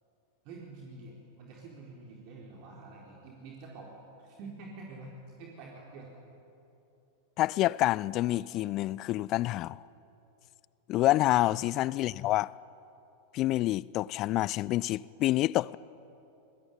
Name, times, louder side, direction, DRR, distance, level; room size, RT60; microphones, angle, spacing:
voice 1, 0.4-3.9 4.2-6.1 11.2-11.5, right 3 dB, 45° right, 4.2 m, -47 dB
voice 2, 7.4-9.8 10.9-12.5 13.3-15.8, left 16 dB, 35° left, 0.5 m, -27 dB
26.5 x 21.5 x 9.6 m
figure-of-eight pair, 90°, 0 cm